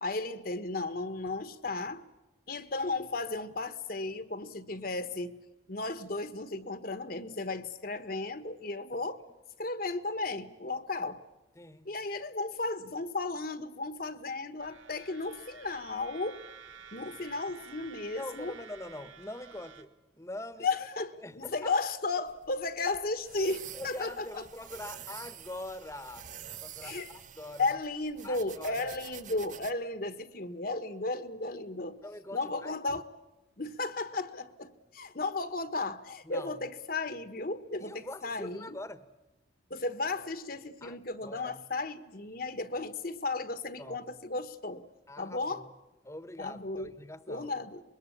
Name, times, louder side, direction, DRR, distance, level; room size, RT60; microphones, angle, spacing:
voice 1, 0.0-2.0 2.5-5.3 5.7-9.2 9.6-11.2 11.8-16.4 16.9-18.5 20.6-24.4 26.8-27.1 27.6-32.0 32.3-33.0 33.6-38.8 39.7-44.8 45.2-45.7 46.4-46.9 47.3-47.8, left 3 dB, 50° left, 1.3 m, -34 dB
voice 2, 11.6-11.9 18.1-20.7 21.2-21.7 23.4-27.8 28.2-28.9 32.0-32.7 36.2-36.6 37.8-39.0 40.8-41.0 41.2-41.6 43.8-44.2 45.1-45.7 46.0-47.5, left 1 dB, 15° left, 1.2 m, -44 dB
sound 1, 14.6-19.8, right 6 dB, 90° right, 2.0 m, -51 dB
sound 2, 22.3-29.7, right 9 dB, 40° right, 1.0 m, -48 dB
25.5 x 22.0 x 8.7 m
head